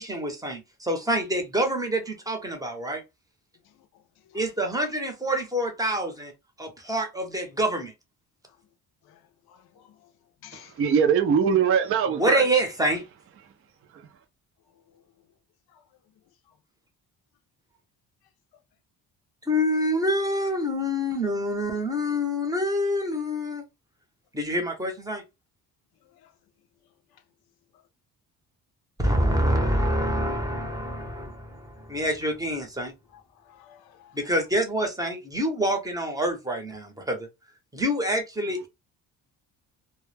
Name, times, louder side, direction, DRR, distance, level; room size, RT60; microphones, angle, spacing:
voice 1, 0.0-3.0 4.3-6.3 6.6-7.9 12.1-13.0 19.5-23.6 24.3-25.2 29.0-32.9 34.1-37.3 37.7-38.7, equal, 10° right, 0.7 m, -26 dB
voice 2, 9.5-10.0 10.4-10.7 15.7-15.8 26.2-26.3 33.1-34.2, left 10 dB, 75° left, 0.5 m, -52 dB
voice 3, 10.8-12.4, right 7 dB, 40° right, 0.4 m, -21 dB
2.1 x 2.1 x 3.2 m
cardioid pair, 125°, 38 cm